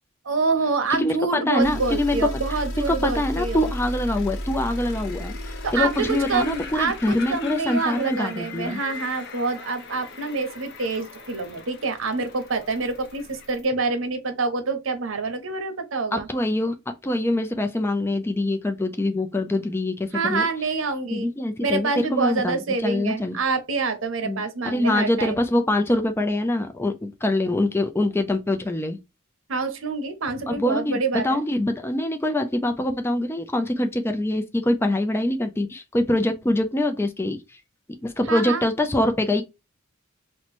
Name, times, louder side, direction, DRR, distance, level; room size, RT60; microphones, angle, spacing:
voice 1, 0.2-3.7 5.6-16.3 20.1-21.3 21.6-25.4 29.5-31.4 38.3-38.6, right 4 dB, 75° right, 0.8 m, -26 dB
voice 2, 1.0-2.3 2.9-8.8 16.1-16.7 17.0-20.5 21.1-23.4 24.2-29.0 30.5-37.4 38.0-39.4, left 1 dB, 10° left, 0.4 m, -24 dB
sound 1, 1.6-13.7, equal, 85° left, 0.9 m, -36 dB
sound 2, 3.3-13.6, left 5 dB, 60° left, 0.6 m, -41 dB
2.9 x 2.1 x 4.1 m
head